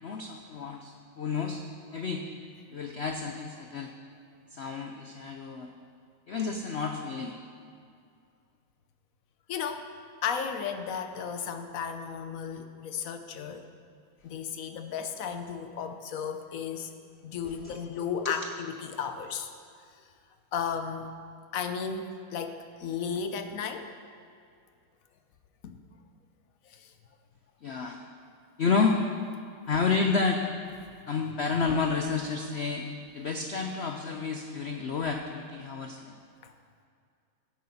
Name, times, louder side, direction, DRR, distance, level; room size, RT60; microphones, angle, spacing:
voice 1, 0.0-1.6 1.9-2.3 2.7-3.9 4.5-5.7 6.3-7.4 17.6-17.8 18.2-18.4 27.6-28.0 28.6-29.0 29.7-30.5 31.1-32.9 33.1-36.1, left 4 dB, 80° left, 4 dB, 0.5 m, -30 dB
voice 2, 9.5-9.9 10.2-13.7 14.2-16.9 17.2-19.5 20.0-20.1 20.5-21.2 21.5-24.0 25.6-25.8 26.6-26.9 30.8-31.0 36.4-36.5, left 6 dB, 60° left, 8 dB, 1.0 m, -34 dB
16.0 x 8.6 x 4.1 m, 2.3 s
omnidirectional pair, 2.0 m